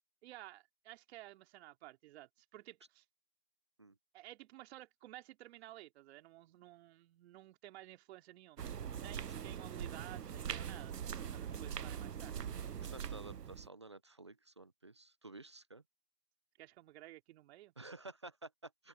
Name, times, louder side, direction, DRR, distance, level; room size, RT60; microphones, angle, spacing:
voice 1, 0.2-3.0 4.1-8.7 9.0-12.4 16.6-17.7, right 15 dB, 40° right, 2.9 m, -54 dB
sound 1, 8.6-13.7, right 8 dB, 85° right, 1.0 m, -42 dB
voice 2, 12.9-15.8 17.8-18.9, right 2 dB, 20° right, 0.3 m, -52 dB
open air
hypercardioid pair, 135°, 47 cm